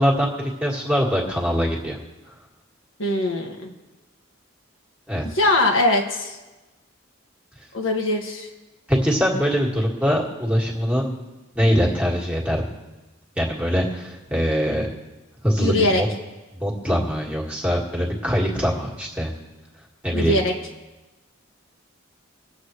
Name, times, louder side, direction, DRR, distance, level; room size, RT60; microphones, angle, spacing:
voice 1, 0.0-2.0 5.1-5.3 8.9-11.1 11.6-12.6 13.4-14.9 15.4-16.1 16.5-19.3 20.0-20.4, equal, 5° right, -2 dB, 1.9 m, -22 dB
voice 2, 3.0-3.7 5.2-6.4 7.7-8.5 15.6-16.0 20.1-20.5, left 2 dB, 65° left, 1 dB, 1.7 m, -21 dB
24.0 x 8.3 x 3.2 m, 1.1 s
head